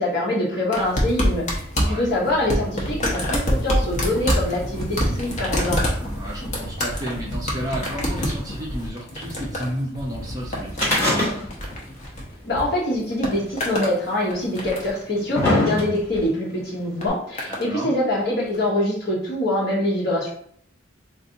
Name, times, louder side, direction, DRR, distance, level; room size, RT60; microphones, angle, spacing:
voice 1, 0.0-1.6 1.9-5.8 12.4-20.3, left 1 dB, 55° left, -4 dB, 1.1 m, -24 dB
sound 1, 0.7-12.6 12.9-14.0 14.3-15.0 15.9-16.2 17.0-17.7 18.5-18.6, equal, 35° left, 0.7 m, -26 dB
voice 2, 1.7-2.0 6.0-11.4 17.5-17.9, equal, 20° right, -4 dB, 0.5 m, -32 dB
sound 2, 10.7-11.8 12.0-12.1 13.1-13.2 14.1-14.2 14.9-16.2 17.1-17.2, left 1 dB, 10° left, 1.3 m, -22 dB
2.6 x 2.5 x 3.8 m, 0.62 s
head